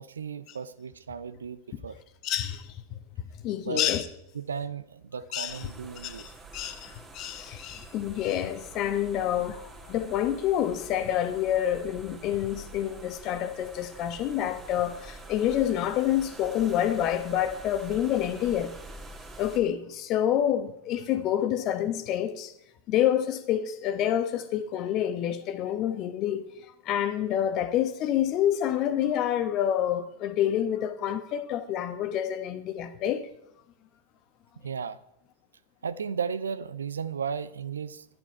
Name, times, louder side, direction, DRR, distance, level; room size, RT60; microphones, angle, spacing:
voice 1, 0.0-2.0 3.6-3.8 4.3-6.3 34.6-35.0 35.8-38.1, right 6 dB, 70° right, 0.5 m, -35 dB
voice 2, 2.2-2.7 3.4-4.1 5.3-5.6 6.0-18.7 19.4-22.5 22.9-26.4 26.8-33.3, left 11 dB, 35° left, 1.1 m, -28 dB
sound 1, 5.5-19.6, right 2 dB, 15° right, 2.0 m, -47 dB
11.0 x 10.5 x 4.6 m
figure-of-eight pair, 90°, 0 cm